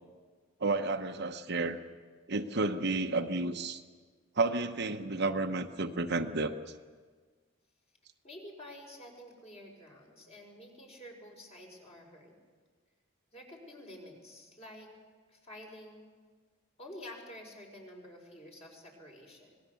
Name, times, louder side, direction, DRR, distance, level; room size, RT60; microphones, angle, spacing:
voice 1, 0.6-1.8 2.3-3.8 4.4-6.5, right 3 dB, 55° right, 6 dB, 1.0 m, -31 dB
voice 2, 8.2-12.4 13.3-14.9 15.3-16.1 16.8-19.6, left 1 dB, 30° left, 1 dB, 5.1 m, -49 dB
26.0 x 19.5 x 7.1 m, 1.5 s
head